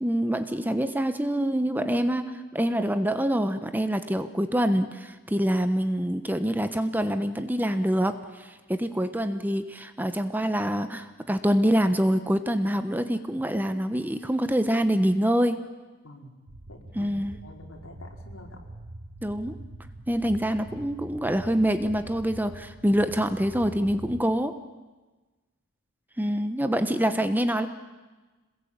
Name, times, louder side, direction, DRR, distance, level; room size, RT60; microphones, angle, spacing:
voice 1, 0.0-15.6 16.9-17.4 19.2-19.6 20.1-24.6 26.2-27.7, equal, 10° right, 10 dB, 1.1 m, -25 dB
voice 2, 16.0-16.4 16.7-17.1 17.4-18.6 27.1-27.3, left 1 dB, 85° left, 2 dB, 4.6 m, -48 dB
sound 1, 16.5-24.2, right 1 dB, 65° right, 1.4 m, -44 dB
27.0 x 20.5 x 8.8 m, 1.2 s
head